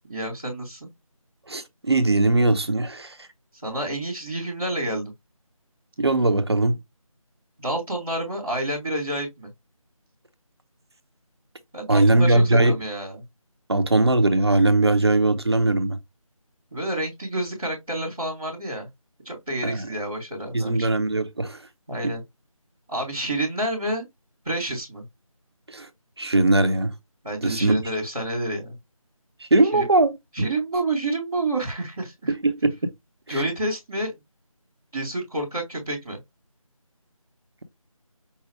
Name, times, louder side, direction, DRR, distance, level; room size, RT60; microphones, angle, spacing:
voice 1, 0.1-0.9 3.6-5.1 7.6-9.5 11.7-13.2 16.7-18.9 19.2-20.9 21.9-22.2 22.9-24.1 24.4-25.0 27.2-28.8 29.7-29.9 30.3-32.3 33.3-34.1 34.9-36.2, right 1 dB, ahead, 0.6 m, -29 dB
voice 2, 1.5-3.2 6.0-6.8 11.9-12.7 13.7-16.0 19.6-19.9 20.5-21.6 22.0-22.1 25.7-25.9 26.2-26.9 27.4-27.8 29.4-30.1 32.3-32.7 33.3-33.4, right 2 dB, 45° right, 0.8 m, -20 dB
5.4 x 2.1 x 3.4 m
figure-of-eight pair, 165°, 18 cm